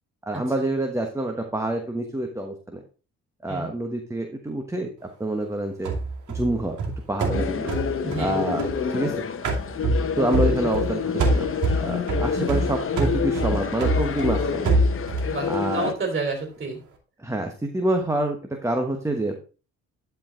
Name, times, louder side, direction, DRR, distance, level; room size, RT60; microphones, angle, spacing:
voice 1, 0.3-2.8 3.4-4.9 5.2-5.9 6.3-6.8 7.1-7.7 8.2-9.2 10.2-11.5 11.7-14.7 15.5-15.9 17.2-18.4 18.6-19.4, right 1 dB, 10° right, 3 dB, 1.1 m, -27 dB
sound 1, 5.8-9.1 9.4-10.9 11.2-15.3, right 2 dB, 75° right, 2.5 m, -25 dB
sound 2, 7.3-15.9, left 6 dB, 45° left, 1.0 m, -28 dB
voice 2, 8.0-8.5 10.4-10.5 15.2-16.8, right 3 dB, 30° right, 3 dB, 3.3 m, -30 dB
11.5 x 4.7 x 3.7 m, 0.35 s
cardioid pair, 90°, 30 cm